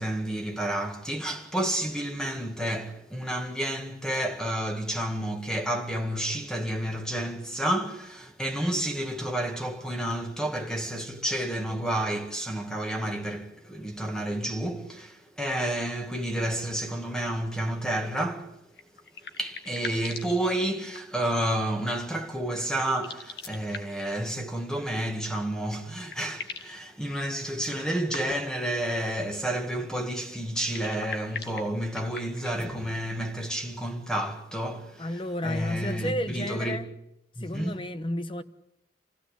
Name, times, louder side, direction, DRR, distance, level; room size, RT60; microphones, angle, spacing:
voice 1, 0.0-18.5 19.4-35.1 35.4-36.8 37.4-37.8, right 1 dB, 5° left, 1.9 m, -30 dB
sound 1, 18.7-21.2 22.9-24.1 25.5-25.6 25.8-26.8 27.6-28.6 30.5-32.7, left 5 dB, 60° left, 2.0 m, -41 dB
voice 2, 35.0-36.9 37.4-38.4, left 1 dB, 30° left, 1.0 m, -32 dB
27.5 x 16.5 x 8.5 m
head